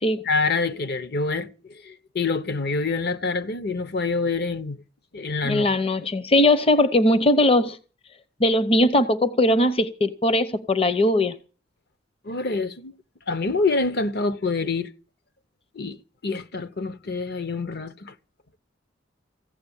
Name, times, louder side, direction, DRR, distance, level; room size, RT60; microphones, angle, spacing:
voice 1, 0.2-4.8 5.1-5.7 12.2-12.9 13.3-14.9 15.7-16.0 16.2-18.1, left 3 dB, 55° left, 1.0 m, -26 dB
voice 2, 5.4-7.8 8.4-11.4, left 1 dB, 30° left, 0.7 m, -20 dB
15.5 x 7.0 x 9.9 m
head